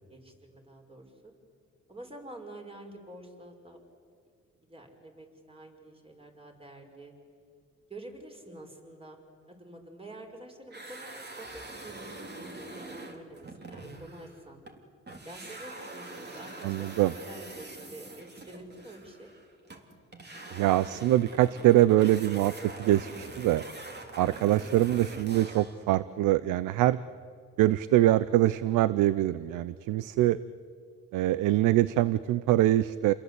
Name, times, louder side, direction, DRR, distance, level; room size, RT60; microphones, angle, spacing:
voice 1, 0.1-1.3 1.9-3.9 4.7-7.1 7.9-9.2 9.5-14.6 15.2-19.3, right 1 dB, 20° right, 3 dB, 5.4 m, -48 dB
sound 1, 10.7-14.8 15.1-25.9, right 2 dB, 35° right, 3.5 m, -44 dB
voice 2, 16.6-17.1 20.5-22.5 22.8-23.6 24.2-27.0 27.6-30.4 31.1-33.1, right 14 dB, 90° right, 16 dB, 0.7 m, -24 dB
29.5 x 22.0 x 8.3 m, 2.2 s
cardioid pair, 90°, 30 cm